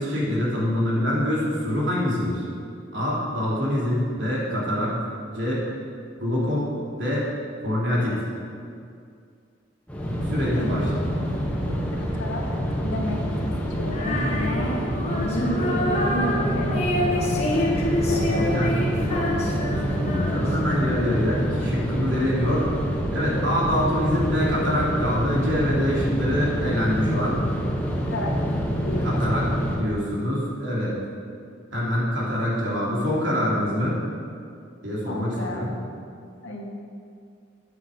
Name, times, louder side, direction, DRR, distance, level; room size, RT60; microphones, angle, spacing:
voice 1, 0.0-2.4 2.9-5.0 5.3-5.6 6.2-6.7 7.0-7.3 7.6-8.2 10.3-11.1 18.2-18.7 19.0-22.7 23.1-27.4 29.0-31.0 31.7-34.0 34.8-35.7, equal, 75° right, -5 dB, 3.2 m, -25 dB
sound 1, 9.9-29.8, equal, 10° left, 1.2 m, -27 dB
voice 2, 10.6-11.2 11.5-12.5 12.8-13.2 13.8-14.8 15.1-17.8 18.0-18.7 19.2-19.3 28.0-28.4 28.8-29.5 35.1-35.8 36.4-36.7, left 1 dB, 80° left, 0 dB, 1.6 m, -31 dB
Female singing, 13.9-21.3, left 1 dB, 35° left, 1.5 m, -27 dB
9.1 x 7.4 x 7.2 m, 2.3 s
head